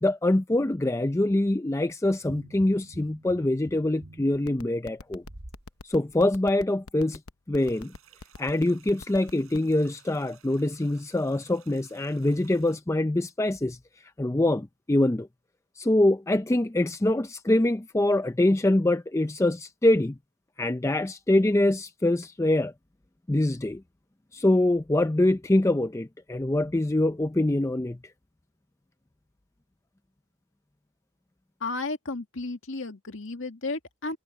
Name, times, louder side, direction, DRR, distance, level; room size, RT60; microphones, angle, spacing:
voice 1, 0.0-5.2 5.8-7.2 7.5-7.9 8.4-13.8 14.2-15.3 15.8-20.2 20.6-22.7 23.3-23.8 24.3-28.0, left 1 dB, 15° left, 0.4 m, -24 dB
sound 1, 2.2-5.6 6.1-6.2, right 1 dB, 50° right, 1.6 m, -48 dB
sound 2, 4.3-9.7, left 3 dB, 80° left, 0.9 m, -42 dB
sound 3, 7.6-12.8, right 9 dB, 70° right, 6.3 m, -58 dB
voice 2, 31.6-34.2, left 3 dB, 60° left, 2.0 m, -33 dB
head